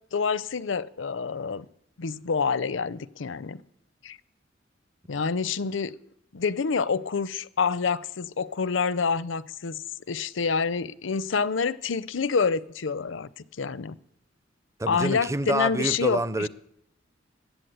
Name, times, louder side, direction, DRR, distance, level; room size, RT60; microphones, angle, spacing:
voice 1, 0.1-1.7 2.0-3.6 4.0-4.2 5.1-5.9 6.3-14.0 14.9-16.5, left 5 dB, 75° left, 0.6 m, -27 dB
voice 2, 14.8-16.5, right 2 dB, 15° right, 0.5 m, -27 dB
20.5 x 8.3 x 8.1 m
head